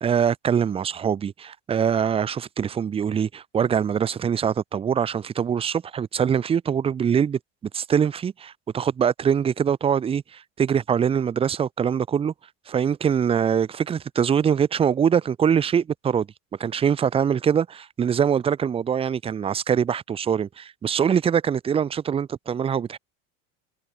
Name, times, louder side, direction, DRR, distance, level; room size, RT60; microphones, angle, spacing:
voice 1, 0.0-7.4 7.7-12.3 12.7-16.3 16.6-23.0, right 8 dB, 15° right, 0.4 m, -23 dB
supercardioid pair, 120°, 40 cm